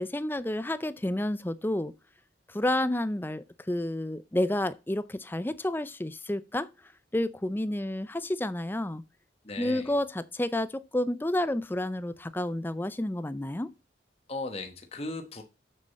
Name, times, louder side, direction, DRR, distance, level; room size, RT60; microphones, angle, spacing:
voice 1, 0.0-1.9 2.5-6.7 7.1-9.0 9.6-13.7, left 1 dB, 10° left, 0.4 m, -30 dB
voice 2, 9.4-10.0 14.3-15.4, left 2 dB, 35° left, 1.1 m, -37 dB
7.7 x 6.5 x 4.1 m
head